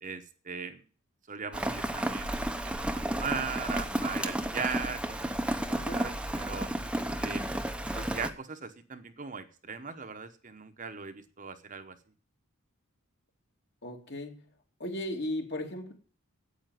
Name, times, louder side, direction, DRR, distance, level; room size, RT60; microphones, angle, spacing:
voice 1, 0.0-0.8 1.3-5.3 5.7-6.7 7.2-7.4 7.9-12.0, right 5 dB, 35° right, 1.0 m, -39 dB
Rain, 1.5-8.3, right 1 dB, 5° right, 0.8 m, -32 dB
voice 2, 5.7-6.1 13.8-14.4 14.8-15.9, left 1 dB, 50° left, 2.6 m, -36 dB
9.2 x 9.0 x 9.2 m
head